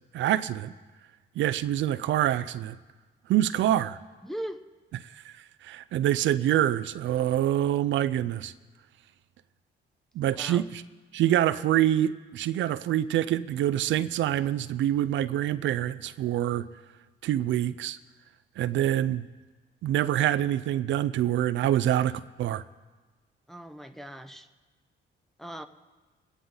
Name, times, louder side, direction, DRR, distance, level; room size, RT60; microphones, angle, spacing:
voice 1, 0.1-0.7 1.4-2.8 3.3-4.0 5.1-8.5 10.2-10.8 11.1-16.7 17.2-18.0 18.6-19.3 19.8-22.6, right 12 dB, 70° right, 15 dB, 0.4 m, -26 dB
voice 2, 4.2-4.6 10.3-10.7 23.5-24.5 25.4-25.7, equal, ahead, 7 dB, 0.8 m, -39 dB
22.5 x 9.6 x 3.9 m, 1.3 s
cardioid pair, 90°, 20 cm